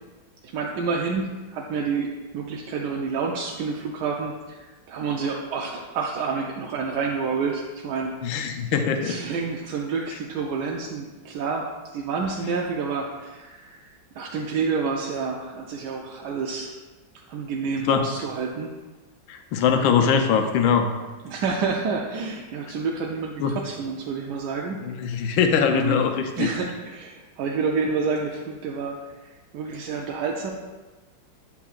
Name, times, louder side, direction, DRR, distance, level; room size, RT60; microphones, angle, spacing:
voice 1, 0.4-8.1 9.0-11.7 11.9-16.8 17.3-18.7 21.2-24.9 25.2-25.3 25.7-26.0 26.4-30.5, right 5 dB, 70° right, 0 dB, 1.0 m, -29 dB
voice 2, 8.2-9.2 17.8-18.1 19.3-20.9 23.4-23.5 24.9-26.5, left 6 dB, 90° left, 5 dB, 1.4 m, -22 dB
8.2 x 5.7 x 2.4 m, 1.2 s
omnidirectional pair, 2.1 m